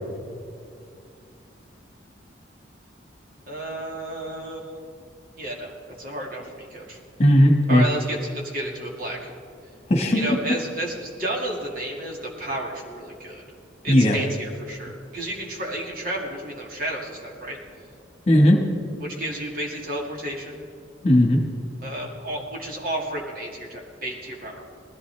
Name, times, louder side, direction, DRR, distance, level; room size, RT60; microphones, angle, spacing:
voice 1, 3.5-4.8 5.4-5.7 6.0-7.0 7.7-9.3 10.1-13.4 13.8-17.6 19.0-20.6 21.8-24.6, right 1 dB, 45° right, -1 dB, 2.2 m, -32 dB
voice 2, 7.2-7.9 9.9-10.5 13.9-14.2 18.3-18.7 21.0-21.4, equal, 35° left, 2 dB, 1.5 m, -17 dB
20.0 x 15.5 x 3.4 m, 2.4 s
head